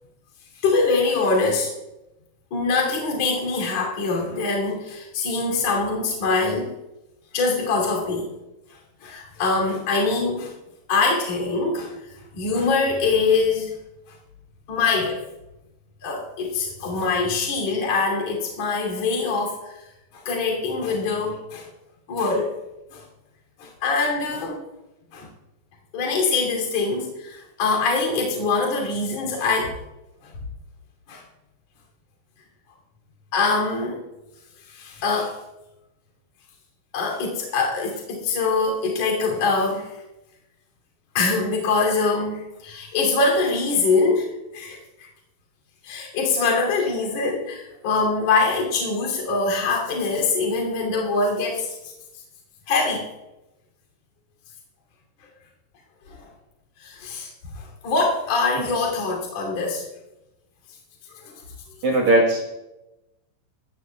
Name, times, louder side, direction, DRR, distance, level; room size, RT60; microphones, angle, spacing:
voice 1, 0.6-1.7 2.5-6.7 7.3-8.3 9.0-10.5 10.9-11.9 12.3-13.7 14.7-15.2 16.0-19.7 20.1-21.7 22.1-22.6 22.9-23.0 23.6-24.6 25.1-25.3 25.9-29.8 30.2-30.3 31.1-31.2 33.3-34.0 34.7-35.4 36.9-40.0 41.1-45.1 45.8-51.9 52.7-53.1 56.1-56.3 56.8-59.8 61.2-61.3 61.7-61.8, left 4 dB, 40° left, 0 dB, 3.5 m, -23 dB
voice 2, 61.8-62.4, right 1 dB, 70° right, -2 dB, 1.8 m, -19 dB
21.0 x 15.5 x 2.3 m, 0.97 s
omnidirectional pair, 5.5 m